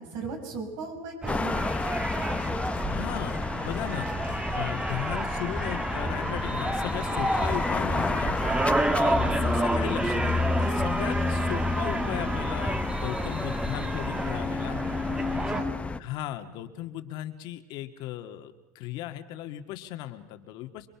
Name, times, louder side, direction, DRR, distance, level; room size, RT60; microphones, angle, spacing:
voice 1, 0.0-1.6 15.5-15.9, right 4 dB, 65° right, 3 dB, 6.9 m, -37 dB
sound 1, 1.2-15.6, right 2 dB, 10° right, 1.3 m, -30 dB
sound 2, 1.3-16.0, left 4 dB, 15° left, 0.8 m, -31 dB
voice 2, 2.9-4.1 4.5-14.9 16.0-20.9, left 13 dB, 60° left, 7 dB, 1.8 m, -37 dB
28.0 x 22.0 x 5.9 m, 1.1 s
supercardioid pair, 125°, 8 cm